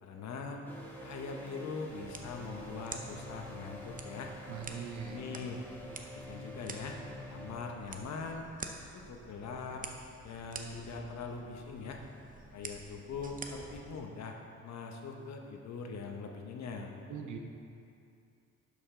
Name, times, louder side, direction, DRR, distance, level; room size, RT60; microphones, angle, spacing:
voice 1, 0.0-0.6 1.0-4.3 5.0-5.6 6.0-7.0 7.3-8.5 8.9-9.8 10.2-12.0 12.5-14.4 14.6-16.9, left 4 dB, 65° left, 2 dB, 1.0 m, -42 dB
sound 1, 0.7-7.5, equal, 5° left, 1.6 m, -47 dB
sound 2, 2.0-14.0, right 4 dB, 25° right, 0.7 m, -49 dB
voice 2, 4.5-5.2 17.1-17.4, right 7 dB, 75° right, 4 dB, 0.9 m, -41 dB
11.5 x 5.3 x 3.8 m, 2.6 s
cardioid pair, 90°, 30 cm